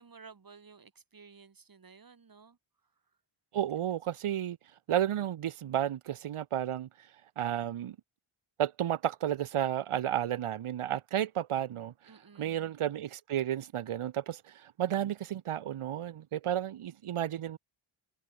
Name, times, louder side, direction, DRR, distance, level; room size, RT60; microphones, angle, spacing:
voice 1, 0.0-2.6 12.1-12.7, right 5 dB, 45° right, 3.9 m, -54 dB
voice 2, 3.5-4.6 4.9-6.9 7.4-8.0 8.6-11.9 12.4-17.6, right 11 dB, 85° right, 1.1 m, -32 dB
wide cardioid pair, 140°, 49 cm